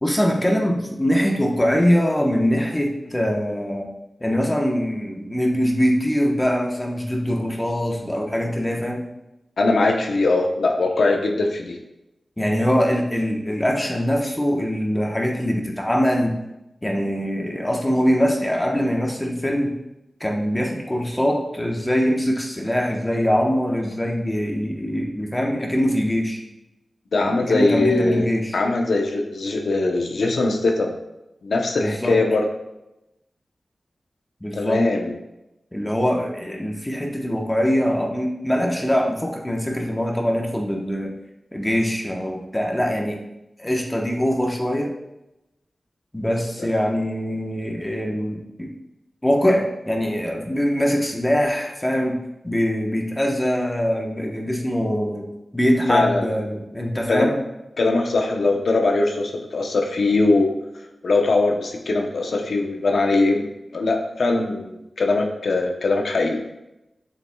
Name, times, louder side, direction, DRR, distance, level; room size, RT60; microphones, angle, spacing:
voice 1, 0.0-3.9 4.2-9.1 12.4-16.4 16.8-19.7 20.2-26.4 27.2-28.6 31.8-32.2 34.4-34.8 35.7-41.1 41.5-43.2 43.6-44.9 46.1-48.7 49.2-57.4, equal, 15° left, 0 dB, 1.1 m, -23 dB
voice 2, 9.6-11.8 27.1-28.3 28.5-30.9 31.4-32.4 34.5-35.1 55.9-56.2 57.1-57.3 57.8-60.5 61.0-63.5 63.7-66.4, left 3 dB, 80° left, 2 dB, 0.8 m, -21 dB
7.2 x 6.9 x 2.3 m, 0.91 s
cardioid pair, 60°, 0 cm